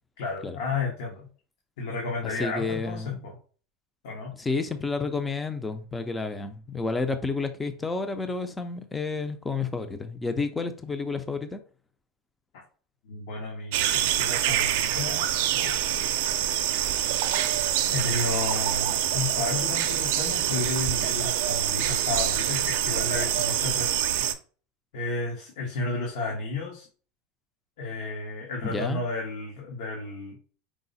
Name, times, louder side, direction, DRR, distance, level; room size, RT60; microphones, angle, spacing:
voice 1, 0.2-1.3 1.8-3.3 4.0-4.4 13.0-15.8 17.8-24.3 24.9-26.9 27.8-30.4, left 3 dB, 75° left, 1.2 m, -32 dB
voice 2, 2.2-3.3 4.3-11.6 28.6-29.0, left 4 dB, 10° left, 0.4 m, -30 dB
sound 1, 13.7-24.3, right 12 dB, 70° right, 0.5 m, -26 dB
4.8 x 2.0 x 4.0 m
supercardioid pair, 155°, 0 cm